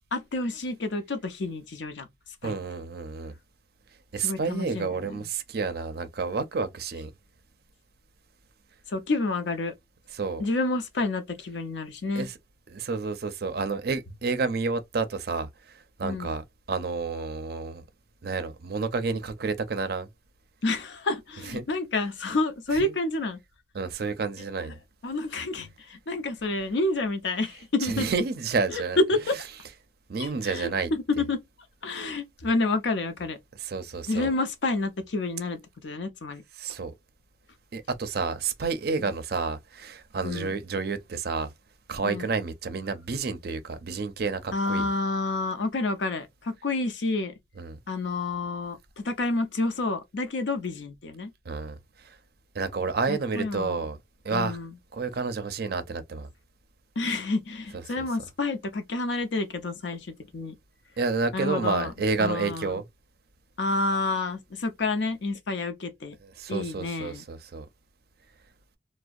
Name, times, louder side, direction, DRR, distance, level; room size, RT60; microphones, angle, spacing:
voice 1, 0.1-2.1 2.4-2.6 4.2-5.3 8.9-9.7 10.4-12.3 16.0-16.3 20.6-23.4 24.6-24.7 25.0-28.1 28.7-29.4 30.2-31.4 31.8-33.4 34.1-36.4 39.0-39.1 40.2-40.5 42.0-42.3 44.5-47.3 47.9-51.3 53.1-53.9 54.3-54.7 57.0-60.5 61.3-61.9 62.2-62.8 63.6-66.2 66.5-67.2, left 3 dB, 70° left, 0.6 m, -29 dB
voice 2, 2.4-3.3 4.1-7.1 10.1-10.4 12.2-12.3 12.7-16.4 16.7-17.9 18.2-20.1 21.5-21.7 22.7-22.9 23.7-24.8 27.8-29.0 30.1-30.9 33.6-34.3 36.6-36.9 37.7-41.5 41.9-44.9 47.6-47.8 51.5-52.2 52.5-54.0 54.2-54.6 54.9-56.3 61.0-62.8 66.4-67.7, right 4 dB, 55° right, 0.5 m, -30 dB
2.6 x 2.0 x 2.3 m
head